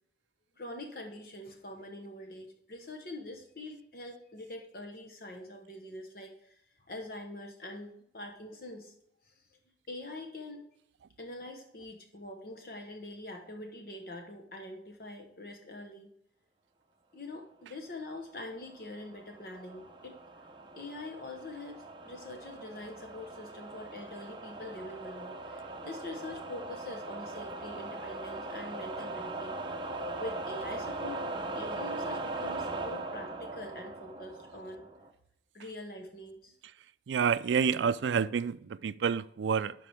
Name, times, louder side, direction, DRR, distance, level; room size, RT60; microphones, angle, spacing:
voice 1, 0.6-6.6 6.9-8.9 9.2-9.3 9.9-10.6 11.2-16.1 17.1-20.2 20.8-29.6 30.2-31.2 31.5-34.9 35.5-36.5, left 2 dB, 55° left, 3 dB, 1.0 m, -44 dB
sound 1, 18.6-35.1, right 2 dB, 25° right, 0.7 m, -40 dB
voice 2, 37.1-39.7, right 6 dB, 80° right, 16 dB, 0.4 m, -28 dB
11.5 x 4.6 x 3.4 m, 0.72 s
head